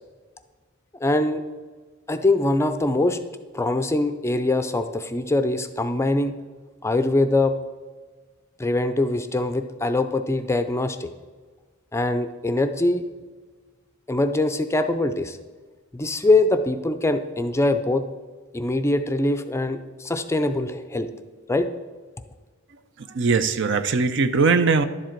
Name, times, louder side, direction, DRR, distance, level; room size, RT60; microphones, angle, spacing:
voice 1, 1.0-1.4 2.1-3.2 3.5-6.3 6.8-7.5 8.6-11.1 11.9-13.0 14.1-15.4 15.9-18.0 18.5-21.1 21.5-21.7, left 2 dB, 15° left, 9 dB, 0.4 m, -23 dB
voice 2, 23.2-24.8, right 4 dB, 60° right, 11 dB, 0.6 m, -20 dB
11.0 x 7.5 x 4.5 m, 1.4 s
head